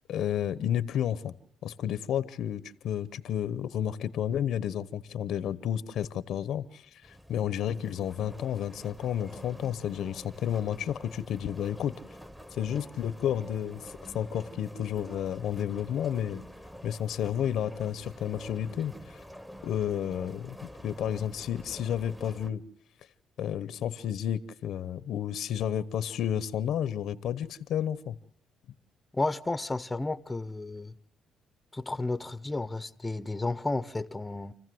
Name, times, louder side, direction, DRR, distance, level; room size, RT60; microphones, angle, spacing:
voice 1, 0.1-1.3 1.6-6.9 7.3-12.0 12.5-16.4 16.8-18.9 19.6-22.6 23.4-28.2, left 10 dB, 75° left, 0.9 m, -31 dB
sound 1, 7.0-22.5, equal, 5° right, 1.3 m, -47 dB
voice 2, 29.1-30.9 31.7-34.5, left 2 dB, 15° left, 0.9 m, -32 dB
28.5 x 15.0 x 7.8 m
cardioid pair, 90°, 0 cm